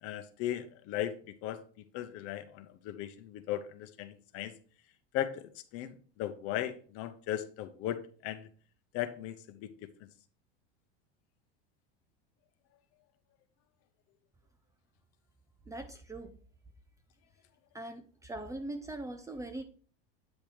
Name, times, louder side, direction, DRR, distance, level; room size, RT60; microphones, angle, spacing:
voice 1, 0.0-1.6 1.9-4.5 5.1-8.5 8.9-9.9, left 12 dB, 50° left, 0.8 m, -37 dB
voice 2, 15.7-16.3 17.7-19.6, right 2 dB, 10° right, 0.6 m, -41 dB
9.1 x 3.5 x 4.5 m
supercardioid pair, 135°, 30 cm